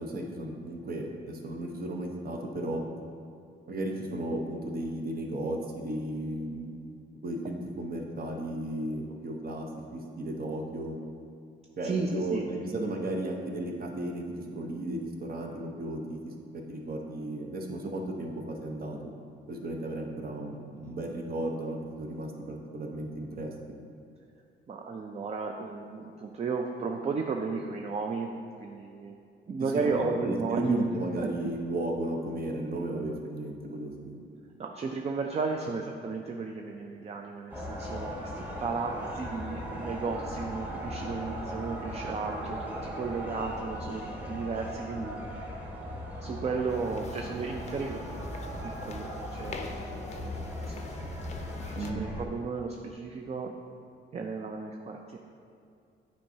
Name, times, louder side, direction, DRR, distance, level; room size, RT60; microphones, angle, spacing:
voice 1, 0.0-2.8 3.7-6.8 7.2-11.0 11.8-14.2 14.5-16.3 16.7-19.0 19.5-23.5 29.7-34.2 51.7-52.1, right 1 dB, 50° right, 1 dB, 0.9 m, -34 dB
voice 2, 11.8-12.5 24.7-28.3 28.6-29.2 29.5-30.8 34.6-45.5 46.2-48.0 48.6-49.8 50.2-50.8 51.8-53.5 54.1-55.2, right 4 dB, 35° right, 2 dB, 0.4 m, -34 dB
sound 1, 37.5-52.3, equal, 10° right, 1.1 m, -38 dB
sound 2, 46.7-51.9, left 4 dB, 35° left, 0.5 m, -44 dB
8.9 x 4.6 x 2.8 m, 2.5 s
cardioid pair, 90°, 20 cm